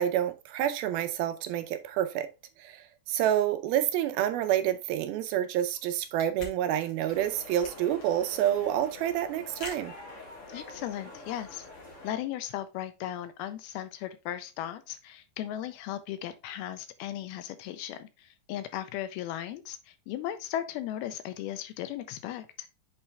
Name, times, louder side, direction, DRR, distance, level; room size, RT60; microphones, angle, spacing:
voice 1, 0.0-2.3 2.6-9.9, right 11 dB, 80° right, 2.4 m, -28 dB
sound 1, 5.5-10.7, left 2 dB, 45° left, 3.0 m, -46 dB
sound 2, 7.1-12.1, left 2 dB, 25° left, 1.8 m, -46 dB
voice 2, 10.5-11.7 12.0-22.7, left 12 dB, 85° left, 2.5 m, -37 dB
7.9 x 4.4 x 3.4 m
omnidirectional pair, 4.5 m